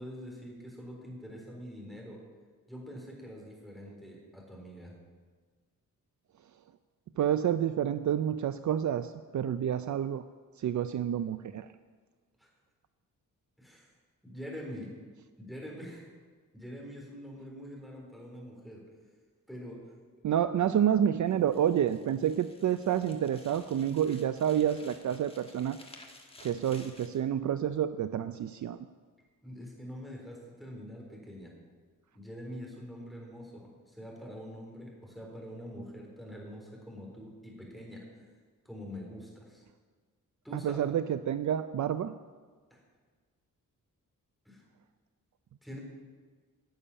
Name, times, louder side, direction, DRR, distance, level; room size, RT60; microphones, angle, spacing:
voice 1, 0.0-2.2 2.7-4.9 12.4-12.5 13.6-13.9 14.2-14.9 15.4-16.1 16.5-18.8 19.5-19.8 29.4-31.5 32.1-38.3 38.6-39.6 40.4-40.8 42.7-42.8 44.5-44.6 45.6-45.8, equal, ahead, -2 dB, 3.9 m, -45 dB
voice 2, 7.2-10.2 10.6-11.7 20.2-25.8 26.4-28.9 40.5-42.1, right 9 dB, 60° right, 12 dB, 0.5 m, -29 dB
sound 1, 21.3-27.2, left 2 dB, 15° left, 1.5 m, -55 dB
12.5 x 7.0 x 9.9 m, 1.5 s
wide cardioid pair, 135°, 33 cm